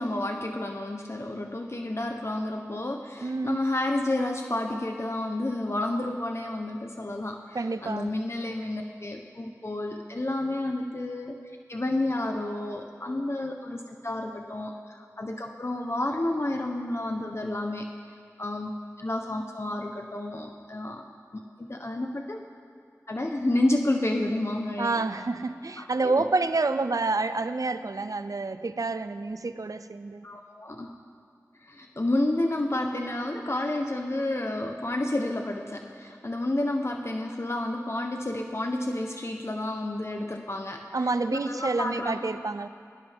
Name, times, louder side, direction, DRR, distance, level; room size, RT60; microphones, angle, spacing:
voice 1, 0.0-11.4 11.7-17.9 18.4-21.0 21.3-22.4 23.1-25.0 25.8-26.1 30.2-30.9 31.6-42.4, left 1 dB, 50° left, 3 dB, 1.0 m, -30 dB
voice 2, 3.2-3.6 7.5-8.1 24.8-30.2 40.9-42.7, right 3 dB, 75° right, 11 dB, 0.6 m, -28 dB
20.0 x 18.0 x 3.6 m, 2.2 s
wide cardioid pair, 40°, 6 cm